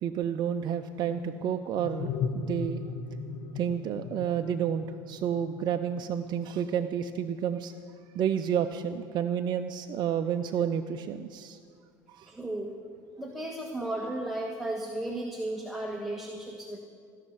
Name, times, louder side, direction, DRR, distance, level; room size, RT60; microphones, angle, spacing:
voice 1, 0.0-2.8 3.5-7.7 8.1-11.6 12.1-12.3, right 8 dB, 50° right, 7 dB, 0.6 m, -30 dB
sound 1, 1.0-6.3, left 5 dB, 60° left, 0.9 m, -37 dB
voice 2, 12.3-12.7 13.2-16.8, right 1 dB, ahead, 1 dB, 1.5 m, -34 dB
17.0 x 6.5 x 9.5 m, 2.3 s
hypercardioid pair, 75°, 10 cm